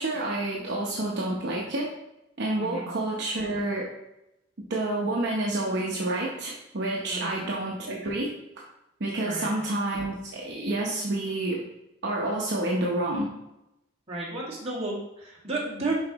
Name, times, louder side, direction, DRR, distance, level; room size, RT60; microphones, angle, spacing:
voice 1, 0.0-1.9 2.4-3.9 4.7-8.3 9.0-11.6 12.0-13.3, right 2 dB, 60° right, -3 dB, 0.9 m, -29 dB
voice 2, 14.1-15.9, right 2 dB, 35° right, -6 dB, 2.1 m, -32 dB
7.1 x 4.9 x 3.0 m, 0.88 s
head